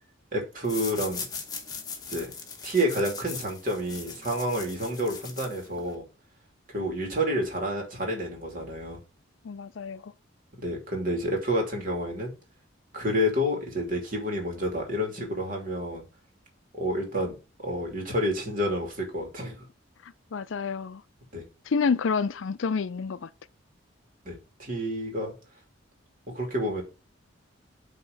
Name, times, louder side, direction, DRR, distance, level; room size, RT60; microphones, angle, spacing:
voice 1, 0.3-1.3 2.1-2.3 2.6-6.0 6.7-9.0 10.5-12.3 12.9-16.0 16.8-17.4 17.6-19.7 21.3-21.5 24.2-25.3 26.3-26.8, equal, 40° right, 2.7 m, -29 dB
sound 1, 0.6-5.9, left 5 dB, 20° left, 1.1 m, -39 dB
voice 2, 9.4-10.1 20.3-21.0 21.7-23.3, left 5 dB, 70° left, 0.4 m, -28 dB
8.6 x 3.6 x 5.3 m
head